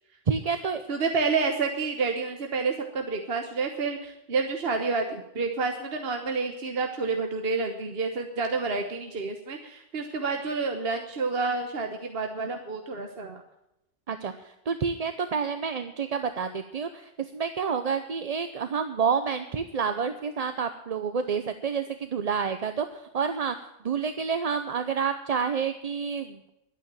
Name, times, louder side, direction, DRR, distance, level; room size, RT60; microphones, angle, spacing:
voice 1, 0.3-0.8 14.1-23.5 23.8-26.5, right 6 dB, 40° right, 9 dB, 0.7 m, -29 dB
voice 2, 0.9-13.4, right 4 dB, 60° right, 4 dB, 1.3 m, -29 dB
12.0 x 8.8 x 8.9 m, 0.88 s
omnidirectional pair, 1.2 m